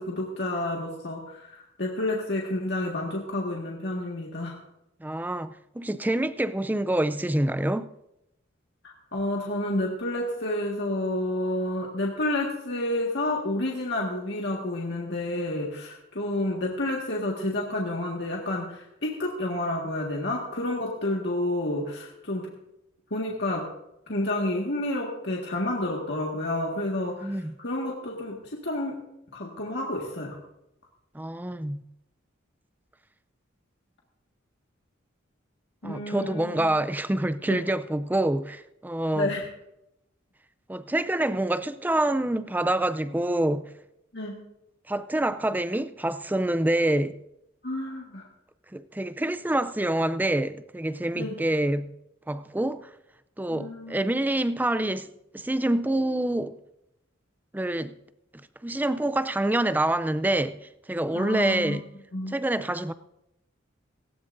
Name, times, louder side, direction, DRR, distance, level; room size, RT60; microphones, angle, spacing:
voice 1, 0.0-4.6 8.8-22.5 23.1-23.7 24.1-29.0 29.3-30.4 35.8-36.7 37.5-37.6 39.1-39.5 44.1-44.3 47.6-48.3 51.1-51.3 53.5-54.0 61.1-61.8 62.1-62.4, left 1 dB, 60° left, 1.8 m, -30 dB
voice 2, 5.0-7.9 27.1-27.5 31.1-31.8 35.8-39.3 40.7-43.7 44.9-47.1 48.7-51.9 52.3-52.9 53.4-55.1 55.3-56.5 57.5-58.0 58.6-61.8 62.3-62.9, right 1 dB, 10° right, 0.4 m, -26 dB
18.0 x 16.5 x 2.6 m
head